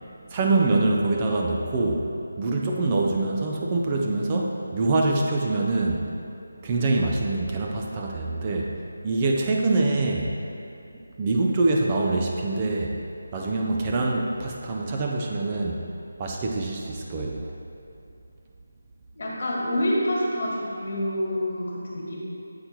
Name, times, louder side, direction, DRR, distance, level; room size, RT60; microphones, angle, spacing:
voice 1, 0.3-6.1 6.6-10.3 11.2-13.0 13.3-15.9 16.2-17.5, right 2 dB, 25° right, 0 dB, 0.4 m, -25 dB
voice 2, 19.1-22.2, equal, 55° left, -4 dB, 1.6 m, -27 dB
7.6 x 4.4 x 4.3 m, 2.7 s
figure-of-eight pair, 160°, 0 cm